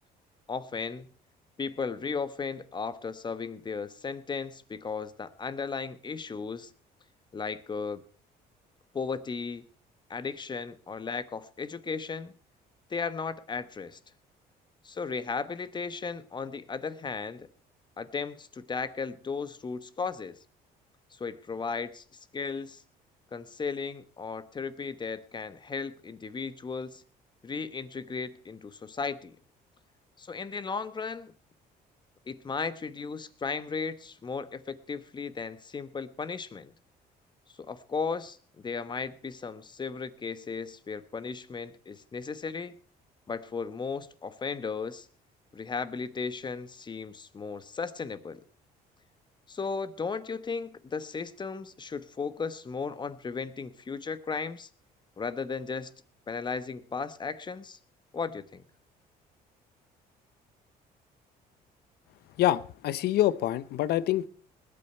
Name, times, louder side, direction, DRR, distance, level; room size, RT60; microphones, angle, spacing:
voice 1, 0.5-1.1 1.6-6.7 7.3-8.0 8.9-9.6 10.1-12.3 12.9-14.0 14.8-17.5 18.0-20.4 21.1-22.0 22.3-22.8 23.3-27.0 27.4-29.4 30.2-31.3 32.3-36.7 37.6-42.7 43.3-45.1 45.5-48.4 49.5-54.7 55.2-55.9 56.3-57.8 58.1-58.6, left 5 dB, 25° left, 14 dB, 1.1 m, -35 dB
voice 2, 62.4-64.3, left 13 dB, 70° left, 18 dB, 0.8 m, -26 dB
20.0 x 8.8 x 4.5 m, 0.43 s
cardioid pair, 110°, 17 cm